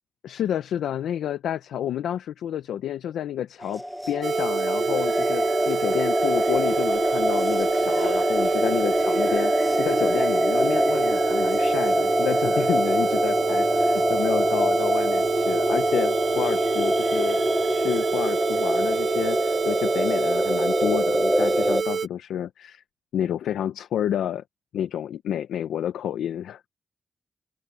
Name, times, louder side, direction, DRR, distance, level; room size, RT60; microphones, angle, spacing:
voice 1, 0.2-17.4 17.7-22.8 23.1-24.4 24.7-26.6, left 10 dB, 90° left, 0.8 m, -29 dB
sound 1, 3.6-21.8, equal, ahead, 0.6 m, -24 dB
sound 2, 4.2-22.1, right 6 dB, 60° right, 0.8 m, -27 dB
Applause / Crowd, 4.8-11.3, right 3 dB, 35° right, 2.9 m, -53 dB
open air
cardioid pair, 65°, 0 cm